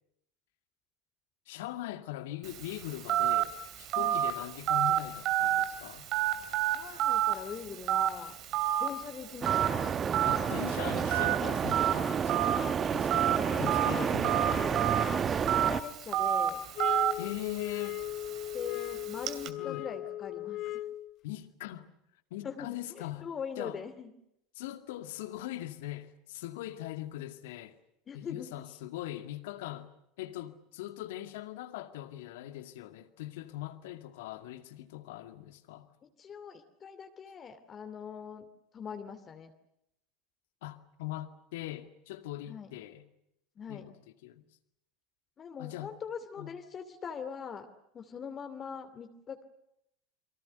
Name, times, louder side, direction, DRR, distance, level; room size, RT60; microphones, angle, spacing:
voice 1, 1.5-6.1 10.3-14.8 17.2-18.1 19.5-19.9 21.2-21.9 22.3-23.3 23.6-23.8 24.6-27.8 28.1-29.9 30.2-35.9 40.6-43.1 43.7-43.8 44.2-44.4 45.6-45.9 46.4-46.5, left 14 dB, 65° left, 2.1 m, -41 dB
Telephone, 2.4-19.5, right 11 dB, 50° right, 2.8 m, -31 dB
voice 2, 6.7-8.3 8.8-9.7 13.5-14.9 15.2-16.6 18.5-20.6 22.4-22.7 22.9-24.1 28.1-28.5 36.2-38.5 38.7-39.5 42.5-42.7 43.6-43.9 45.4-47.7 47.9-49.4, left 6 dB, 30° left, 2.6 m, -42 dB
sound 1, 9.4-15.8, right 7 dB, 30° right, 1.1 m, -30 dB
sound 2, 16.8-21.1, left 15 dB, 50° left, 1.3 m, -37 dB
29.5 x 23.5 x 6.7 m
figure-of-eight pair, 75°, 0 cm